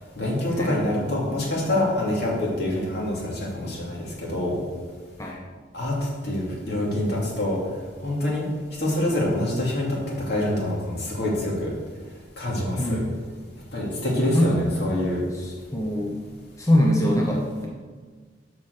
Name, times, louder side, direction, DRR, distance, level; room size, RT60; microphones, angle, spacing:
voice 1, 0.1-4.6 5.7-7.6 8.0-8.5 8.8-11.7 12.4-13.0 13.7-15.2, left 1 dB, 60° left, -4 dB, 2.7 m, -26 dB
voice 2, 12.8-13.1 14.3-14.5 15.7-16.2 16.6-17.7, left 1 dB, 15° left, -2 dB, 0.9 m, -22 dB
7.0 x 6.0 x 6.6 m, 1.5 s
head